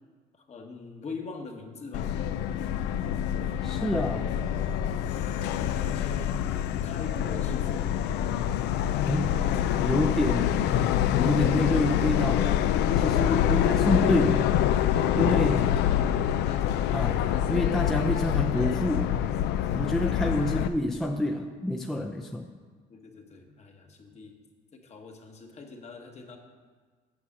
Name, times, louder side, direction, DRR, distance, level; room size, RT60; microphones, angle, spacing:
voice 1, 0.4-2.2 5.7-6.4 6.8-7.9 13.5-14.0 15.6-17.0 20.2-20.7 22.9-24.4 24.7-26.4, left 4 dB, 40° left, 3 dB, 1.2 m, -43 dB
Subway metro underground, 1.9-20.7, left 10 dB, 80° left, 0.4 m, -26 dB
voice 2, 3.6-4.3 9.1-9.5 9.8-10.6 11.2-12.5 13.0-14.5 15.1-15.7 16.9-19.2 19.7-22.5, left 1 dB, ahead, 2 dB, 0.5 m, -28 dB
8.4 x 4.8 x 7.2 m, 1.5 s
cardioid pair, 110°, 17 cm